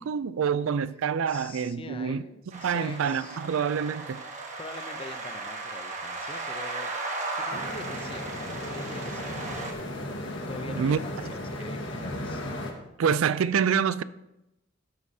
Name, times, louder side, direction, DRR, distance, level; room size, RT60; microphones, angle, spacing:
voice 1, 0.0-2.2 2.5-4.2 10.8-11.0 13.0-14.0, right 7 dB, 80° right, 0.4 m, -26 dB
voice 2, 1.3-3.4 4.6-6.9 7.3-9.4 10.5-12.4, left 3 dB, 25° left, 0.6 m, -44 dB
sound 1, 2.5-9.7, right 3 dB, 35° right, 1.2 m, -36 dB
sound 2, 7.5-12.7, left 1 dB, 65° left, 1.5 m, -35 dB
12.5 x 9.6 x 2.8 m
head